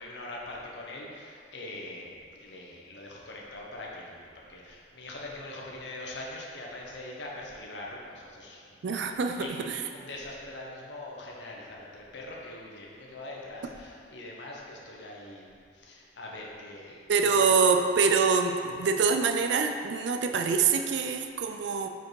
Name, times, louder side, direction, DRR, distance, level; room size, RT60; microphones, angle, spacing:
voice 1, 0.0-2.1 2.3-17.9, left 2 dB, 80° left, -3 dB, 1.0 m, -43 dB
voice 2, 8.8-9.8 17.1-21.9, right 5 dB, 80° right, 5 dB, 0.4 m, -25 dB
5.0 x 4.5 x 4.7 m, 2.2 s
head